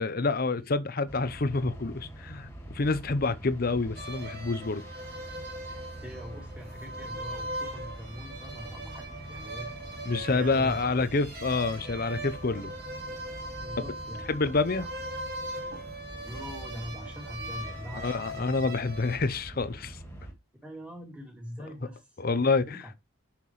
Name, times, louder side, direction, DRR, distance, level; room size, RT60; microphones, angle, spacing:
voice 1, 0.0-2.5 2.7-4.8 10.1-12.7 14.3-14.8 17.9-20.0 22.2-22.8, left 3 dB, 45° left, 0.6 m, -27 dB
sound 1, 1.1-20.3, right 1 dB, 10° left, 2.2 m, -45 dB
sound 2, 4.0-19.2, right 1 dB, 45° right, 2.2 m, -40 dB
voice 2, 6.0-10.9 13.6-14.5 16.3-18.7 20.6-22.4 22.7-23.0, equal, 5° right, 2.4 m, -43 dB
9.4 x 5.9 x 3.1 m
head